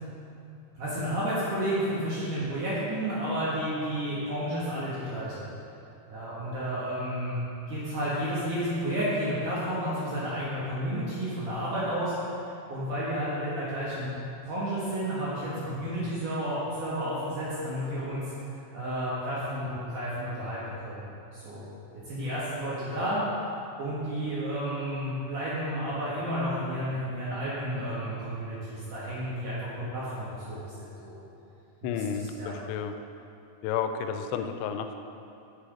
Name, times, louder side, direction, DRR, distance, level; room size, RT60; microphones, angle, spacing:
voice 1, 0.7-5.4 6.1-7.4 7.7-12.1 12.7-14.1 14.4-18.2 18.7-21.6 22.1-23.2 23.8-31.2 31.8-32.5, equal, 60° right, -9 dB, 2.2 m, -31 dB
voice 2, 31.8-32.9 33.6-35.0, left 7 dB, 90° left, 7 dB, 2.9 m, -31 dB
8.4 x 6.0 x 4.9 m, 2.8 s
omnidirectional pair, 5.3 m